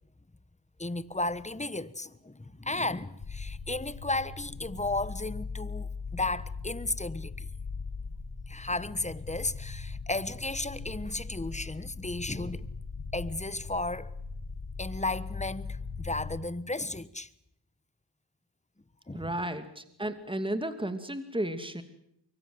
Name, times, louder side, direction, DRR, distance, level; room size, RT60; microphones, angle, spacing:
voice 1, 0.8-7.5 8.5-12.7 13.1-14.1 14.8-17.3 19.1-19.3, left 2 dB, 15° left, 1.3 m, -34 dB
sound 1, 3.2-16.4, left 4 dB, 60° left, 2.6 m, -40 dB
voice 2, 19.1-21.8, right 1 dB, 10° right, 2.8 m, -33 dB
24.0 x 22.5 x 7.9 m
cardioid pair, 40°, 50 cm